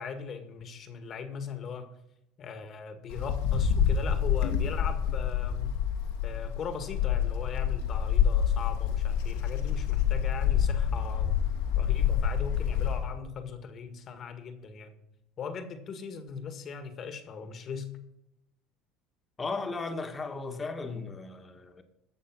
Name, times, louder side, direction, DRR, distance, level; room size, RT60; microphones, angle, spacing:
voice 1, 0.0-1.9 2.4-5.8 6.2-11.4 11.7-14.9 15.4-17.9, left 6 dB, 45° left, 1.7 m, -39 dB
Wind, 3.1-13.1, left 8 dB, 80° left, 1.8 m, -27 dB
voice 2, 19.4-21.8, left 3 dB, 25° left, 1.6 m, -36 dB
13.5 x 6.9 x 6.1 m
supercardioid pair, 100°, 0 cm